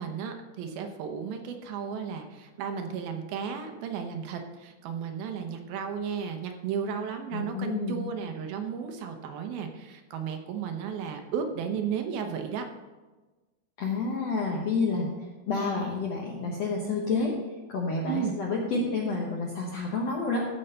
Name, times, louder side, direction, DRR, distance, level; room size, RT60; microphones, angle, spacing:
voice 1, 0.0-12.7 18.0-18.3, right 7 dB, 75° right, 5 dB, 2.6 m, -34 dB
voice 2, 7.3-8.1 13.8-17.3 17.7-20.4, left 3 dB, 65° left, -2 dB, 1.6 m, -29 dB
14.5 x 5.5 x 5.5 m, 1.2 s
omnidirectional pair, 4.5 m